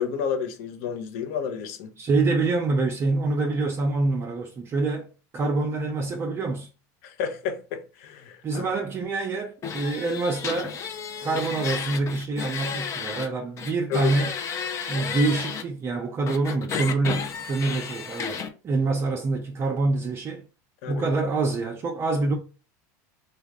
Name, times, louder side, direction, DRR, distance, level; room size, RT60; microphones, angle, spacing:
voice 1, 0.0-1.9 7.0-8.7 13.9-14.1 20.8-21.1, left 7 dB, 70° left, 0.7 m, -30 dB
voice 2, 2.0-5.1 5.3-6.7 8.4-10.8 11.2-14.4 14.9-20.5 20.9-22.3, right 3 dB, 30° right, 0.5 m, -26 dB
sound 1, 9.6-13.3 13.6-15.6 16.3-18.5, left 6 dB, 30° left, 0.6 m, -32 dB
3.3 x 2.3 x 3.5 m
supercardioid pair, 125°, 9 cm